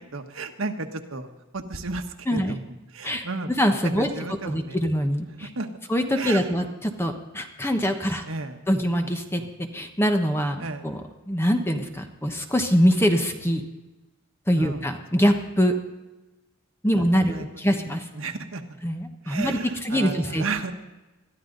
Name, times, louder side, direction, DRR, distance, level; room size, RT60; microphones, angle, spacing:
voice 1, 0.1-1.3 1.5-2.0 2.3-2.6 2.9-3.5 3.8-4.8 5.4-5.7 6.2-6.5 8.3-8.6 10.6-10.8 14.6-14.8 15.1-15.2 17.2-18.6 19.2-20.7, right 3 dB, 75° right, 5 dB, 1.4 m, -33 dB
voice 2, 2.3-2.6 3.0-3.2 3.6-5.5 5.9-8.2 8.7-13.6 14.5-15.7 16.8-18.1 18.8-20.4, equal, 10° left, 5 dB, 1.2 m, -24 dB
21.5 x 13.0 x 4.0 m, 1.1 s
head